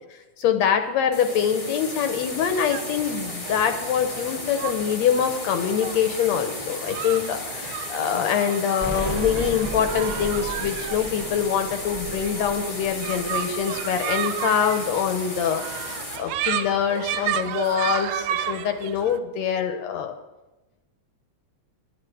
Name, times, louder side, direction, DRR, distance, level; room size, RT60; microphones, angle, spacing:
voice 1, 0.4-20.2, left 8 dB, 75° left, 7 dB, 2.0 m, -24 dB
sound 1, 1.1-16.2, left 2 dB, 30° left, 0.5 m, -35 dB
sound 2, 2.2-19.2, right 10 dB, 80° right, 1.9 m, -33 dB
Explosion, 8.8-13.6, equal, 15° right, 1.5 m, -34 dB
11.5 x 7.9 x 7.6 m, 1.1 s
omnidirectional pair, 3.4 m